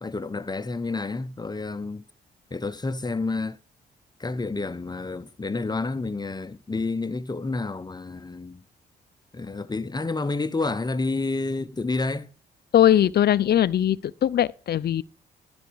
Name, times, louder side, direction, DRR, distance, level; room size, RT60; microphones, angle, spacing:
voice 1, 0.0-2.0 2.5-3.6 4.2-8.6 9.3-12.3, left 3 dB, 20° left, 0.7 m, -29 dB
voice 2, 12.7-15.0, left 11 dB, 55° left, 0.5 m, -20 dB
12.5 x 6.1 x 4.6 m
supercardioid pair, 55°, 20 cm